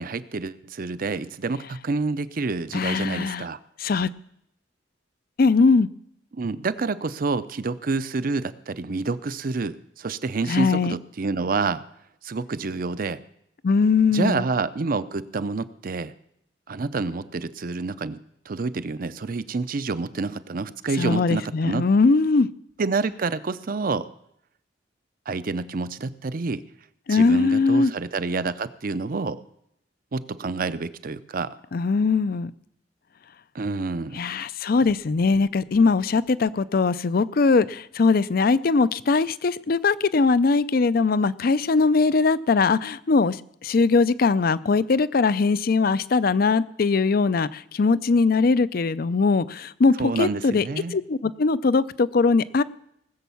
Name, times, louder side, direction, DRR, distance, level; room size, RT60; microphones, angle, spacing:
voice 1, 0.0-3.6 6.3-11.8 12.2-13.2 14.1-16.1 16.7-18.2 18.5-21.9 22.8-24.1 25.3-26.6 27.1-29.4 30.1-31.5 33.5-34.2 50.0-51.0, right 3 dB, 50° right, 14 dB, 0.6 m, -28 dB
voice 2, 2.7-3.4 3.8-4.1 5.4-5.9 10.5-10.9 13.6-14.4 21.0-22.5 27.1-27.9 31.7-32.5 34.1-50.6 50.9-52.6, left 4 dB, 55° left, 16 dB, 0.5 m, -21 dB
19.0 x 7.2 x 7.0 m, 0.77 s
head